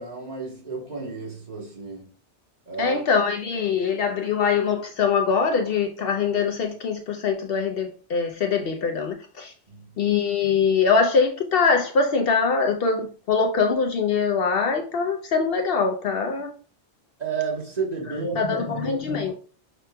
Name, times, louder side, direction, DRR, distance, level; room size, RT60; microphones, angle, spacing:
voice 1, 0.0-2.1 2.7-3.0 9.7-9.9 17.2-19.0, right 5 dB, 35° right, 1.4 m, -32 dB
voice 2, 2.8-9.5 10.0-16.5 18.1-19.3, left 5 dB, 65° left, 0.7 m, -23 dB
5.9 x 3.0 x 2.2 m
omnidirectional pair, 1.2 m